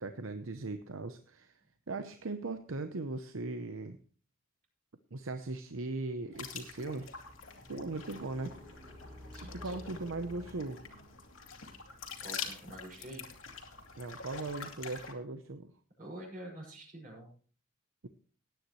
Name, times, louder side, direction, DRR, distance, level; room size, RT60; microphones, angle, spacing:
voice 1, 0.0-1.6 1.9-4.0 5.1-7.1 7.7-8.6 9.4-10.8 14.0-15.7, right 3 dB, 85° right, 9 dB, 0.8 m, -39 dB
sound 1, 6.3-15.1, left 6 dB, 80° left, 2.4 m, -46 dB
sound 2, 7.0-11.6, left 1 dB, 15° right, 4.4 m, -52 dB
voice 2, 9.3-9.8 12.2-13.3 16.0-17.3, right 1 dB, 40° right, -1 dB, 5.9 m, -47 dB
18.5 x 9.5 x 3.1 m, 0.41 s
head